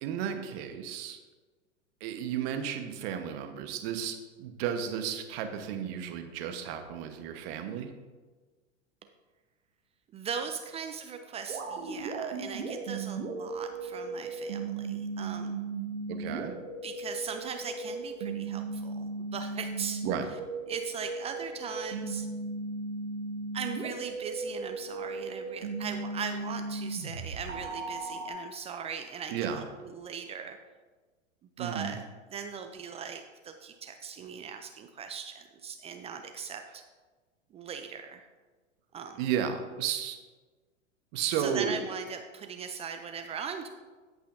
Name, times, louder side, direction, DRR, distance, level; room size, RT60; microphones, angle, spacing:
voice 1, 0.0-1.2 2.0-7.9 16.1-16.5 20.0-20.3 29.3-29.7 31.6-32.0 39.2-40.2 41.1-41.8, right 8 dB, 50° right, 6 dB, 1.2 m, -33 dB
voice 2, 10.1-15.6 16.8-20.1 20.7-22.3 23.5-30.6 31.6-32.0 32.3-36.8 37.5-38.3 38.9-39.3 41.3-43.7, right 6 dB, 20° right, 6 dB, 0.3 m, -39 dB
sound 1, 11.5-28.3, right 3 dB, 85° right, 1.4 m, -36 dB
14.5 x 5.6 x 2.6 m, 1.3 s
hypercardioid pair, 100°, 37 cm